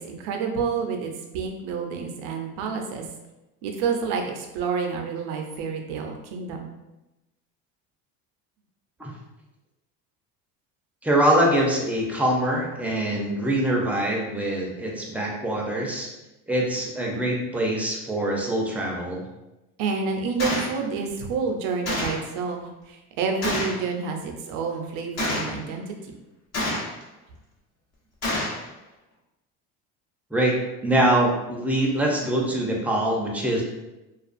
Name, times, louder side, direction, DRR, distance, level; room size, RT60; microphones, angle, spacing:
voice 1, 0.0-3.0 3.6-6.7 19.8-26.1, right 5 dB, 75° right, 3 dB, 0.6 m, -29 dB
voice 2, 11.0-16.1 16.5-19.3 30.3-30.6 30.8-33.6, right 1 dB, 5° right, -2 dB, 0.6 m, -24 dB
Gunshot gunfire, 20.4-20.7 21.9-22.3 23.4-23.8 25.2-25.6 26.5-27.0 28.2-28.6, left 1 dB, 40° left, 0.9 m, -27 dB
2.4 x 2.4 x 2.5 m, 1.0 s
supercardioid pair, 80°, 39 cm